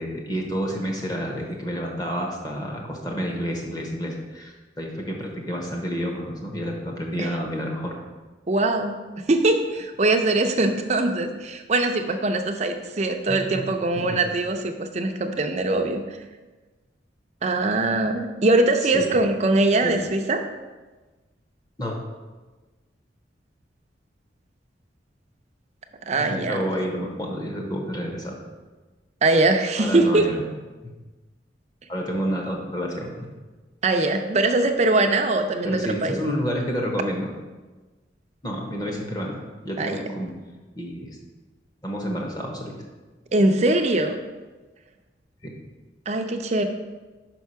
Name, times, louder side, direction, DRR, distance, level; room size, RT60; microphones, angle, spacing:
voice 1, 0.0-7.9 13.3-13.6 13.9-14.2 18.8-19.1 19.8-19.9 21.8-22.0 26.2-28.3 29.8-30.4 31.9-33.1 35.6-37.3 38.4-40.3 40.7-41.2 41.8-42.7 45.4-45.5, equal, 20° left, 0 dB, 1.0 m, -29 dB
voice 2, 8.5-16.0 17.4-20.4 26.1-26.6 29.2-30.3 33.8-36.2 39.8-40.0 43.3-44.2 46.1-46.6, right 2 dB, 40° right, 5 dB, 0.5 m, -22 dB
5.6 x 4.6 x 5.6 m, 1.2 s
head